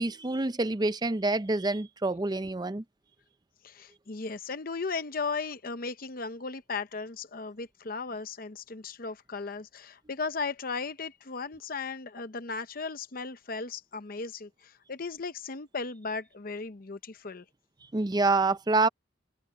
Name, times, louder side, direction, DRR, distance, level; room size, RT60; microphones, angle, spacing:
voice 1, 0.0-2.8 17.9-18.9, right 3 dB, 20° right, 0.5 m, -27 dB
voice 2, 3.6-17.4, left 4 dB, 50° left, 0.8 m, -36 dB
open air
head